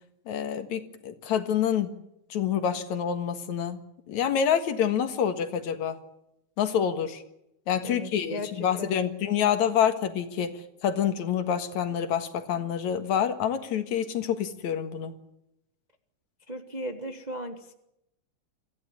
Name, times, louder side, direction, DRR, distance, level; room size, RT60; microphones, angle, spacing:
voice 1, 0.3-1.9 2.3-6.0 6.6-7.2 7.7-15.1, left 8 dB, 75° left, 9 dB, 3.0 m, -27 dB
voice 2, 7.8-9.0 16.5-17.7, equal, 25° right, 6 dB, 0.9 m, -36 dB
25.0 x 15.0 x 9.8 m, 0.84 s
omnidirectional pair, 3.3 m